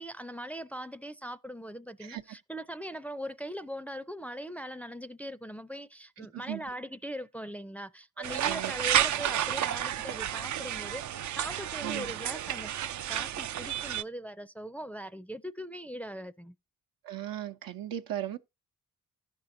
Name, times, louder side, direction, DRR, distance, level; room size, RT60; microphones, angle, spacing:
voice 1, 0.0-12.7 13.1-16.6, equal, 5° left, 0.4 m, -40 dB
voice 2, 6.2-6.6 8.4-8.7 11.8-12.1 17.0-18.4, right 12 dB, 85° right, 0.8 m, -37 dB
sound 1, 8.2-14.0, right 11 dB, 60° right, 0.4 m, -31 dB
15.0 x 5.5 x 2.6 m
cardioid pair, 55°, 34 cm